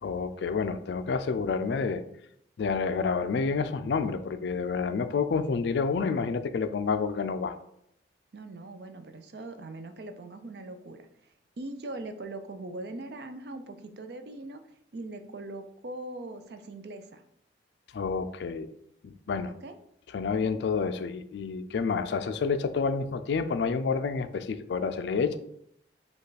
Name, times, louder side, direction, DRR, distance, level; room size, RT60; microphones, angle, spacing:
voice 1, 0.0-2.0 2.6-7.6 17.9-18.7 19.0-19.5 20.1-25.4, left 5 dB, 65° left, 10 dB, 0.3 m, -29 dB
voice 2, 8.3-11.1 11.6-17.2 19.6-19.8, right 2 dB, 55° right, 8 dB, 0.5 m, -41 dB
5.2 x 2.3 x 4.0 m, 0.73 s
head